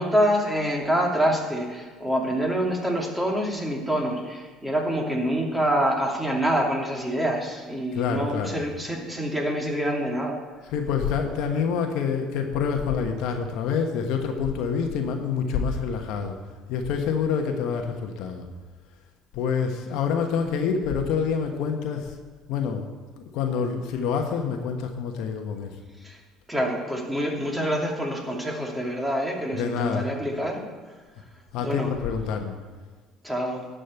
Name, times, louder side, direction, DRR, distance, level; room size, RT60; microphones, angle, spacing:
voice 1, 0.0-10.4 26.0-26.2 26.5-30.6 31.6-31.9 33.2-33.7, equal, 10° right, -1 dB, 2.6 m, -26 dB
voice 2, 7.9-8.6 10.7-16.4 16.7-18.4 19.3-22.1 22.5-22.9 23.2-25.8 29.5-30.1 31.5-32.5, left 6 dB, 70° left, 4 dB, 1.2 m, -27 dB
11.5 x 5.2 x 8.0 m, 1.4 s
supercardioid pair, 80°, 0 cm